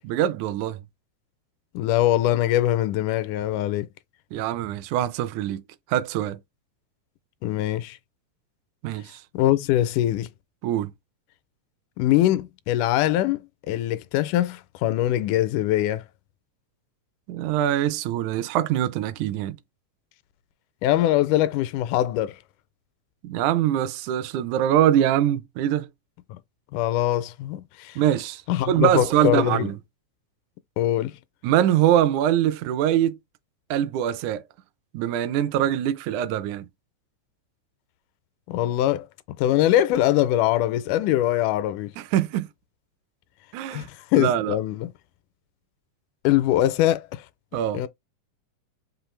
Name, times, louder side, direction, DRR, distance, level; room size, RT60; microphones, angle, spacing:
voice 1, 0.0-0.8 4.3-5.6 5.9-6.4 8.8-9.2 10.6-10.9 17.3-19.6 23.2-25.9 28.0-28.4 28.7-29.8 31.4-33.2 33.7-34.4 34.9-36.7 42.0-42.5 43.5-43.9 44.1-44.6 47.5-47.8, right 11 dB, 80° right, 2.0 m, -23 dB
voice 2, 1.7-3.9 7.4-8.0 9.3-10.3 12.0-16.1 20.8-22.4 26.7-28.0 28.5-29.7 30.8-31.2 38.5-41.9 43.7-44.9 46.2-47.2 47.7-47.9, left 13 dB, 85° left, 2.1 m, -23 dB
5.6 x 2.5 x 3.2 m
omnidirectional pair, 3.5 m